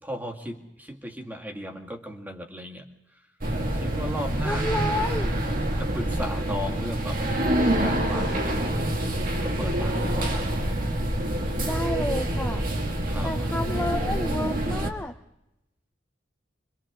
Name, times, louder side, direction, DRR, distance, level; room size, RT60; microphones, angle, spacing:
voice 1, 0.0-2.9 3.1-3.2 3.7-4.6 5.8-7.2 7.8-9.0 9.4-10.4 13.1-13.4, equal, 10° right, 2 dB, 2.1 m, -36 dB
sound 1, 3.4-14.9, right 1 dB, 50° right, 2.1 m, -26 dB
voice 2, 4.4-5.4 11.6-12.7 13.2-15.2, left 1 dB, 10° left, 5 dB, 0.6 m, -31 dB
29.0 x 24.5 x 3.7 m, 0.90 s
head